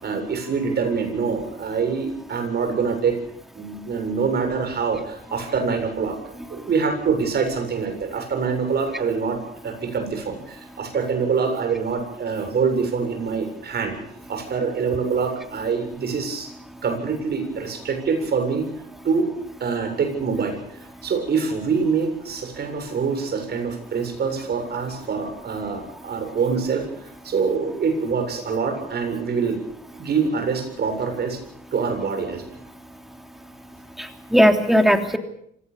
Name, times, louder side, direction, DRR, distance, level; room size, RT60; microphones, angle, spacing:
voice 1, 0.0-3.2 3.5-6.2 6.5-14.0 14.3-16.5 16.8-18.7 19.0-19.3 19.6-20.6 21.0-26.9 27.2-29.6 30.0-31.4 31.7-32.4, right 5 dB, 55° right, 6 dB, 7.5 m, -25 dB
voice 2, 34.0-35.2, equal, ahead, 5 dB, 3.1 m, -18 dB
26.0 x 17.5 x 7.1 m, 0.73 s
cardioid pair, 90°, 20 cm